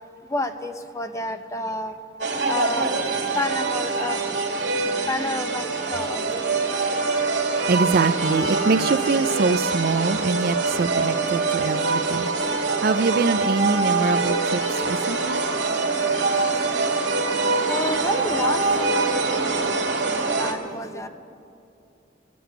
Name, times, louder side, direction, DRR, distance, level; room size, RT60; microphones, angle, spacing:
voice 1, 0.3-2.0 2.3-2.9 3.3-4.2 5.1-6.5 15.8-15.9 16.2-16.3 17.7-21.1, left 2 dB, 15° left, 8 dB, 0.7 m, -30 dB
sound 1, 2.2-20.5, right 3 dB, 75° right, 2.1 m, -24 dB
voice 2, 7.7-12.3 12.8-14.6 14.9-15.4, right 3 dB, 55° right, 12 dB, 0.4 m, -23 dB
23.0 x 7.7 x 7.0 m, 2.6 s
head